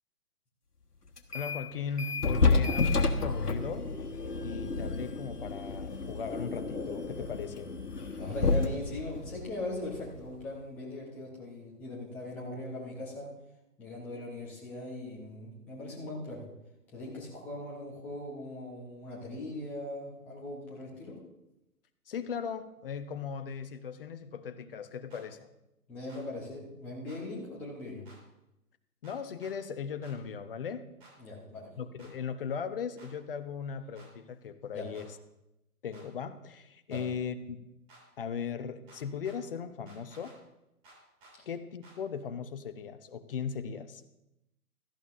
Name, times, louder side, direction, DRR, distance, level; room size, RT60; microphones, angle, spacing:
sound 1, 1.2-1.7 2.0-10.4, left 3 dB, 90° left, 1.4 m, -31 dB
voice 1, 1.3-3.9 4.4-7.7 22.1-25.5 29.0-30.9 31.8-35.2 35.8-37.6 38.2-40.3 41.5-44.0, left 6 dB, 35° left, 10 dB, 0.8 m, -38 dB
voice 2, 8.1-13.3 13.8-16.4 16.9-21.2 25.9-28.0 31.2-31.7 34.7-34.9 36.9-37.0 41.4-41.5, left 2 dB, 5° left, -4 dB, 0.6 m, -40 dB
sound 2, 25.1-25.2 26.1-26.2 27.1-27.2 28.0-28.2 29.0-29.5 30.0-30.2 31.0-31.1 32.0-32.1 33.0-33.1 33.9-34.1 34.9-35.1 35.9-36.1 36.9-37.0 37.9-38.0 38.9-39.4 39.9-40.4 40.8-41.3 41.8-42.0, right 2 dB, 30° right, 4.6 m, -56 dB
17.0 x 13.0 x 2.5 m, 0.90 s
figure-of-eight pair, 140°, 46 cm